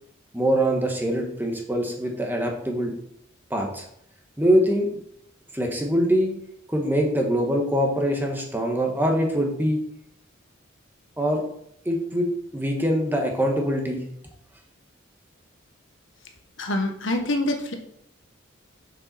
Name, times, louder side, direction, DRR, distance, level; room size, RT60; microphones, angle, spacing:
voice 1, 0.3-2.9 3.5-3.9 4.4-4.9 5.5-6.3 6.7-9.8 11.2-11.4 11.8-14.0, equal, 10° right, 2 dB, 1.3 m, -23 dB
voice 2, 16.6-17.7, left 1 dB, 65° left, 4 dB, 1.2 m, -25 dB
7.4 x 6.6 x 4.3 m, 0.70 s
head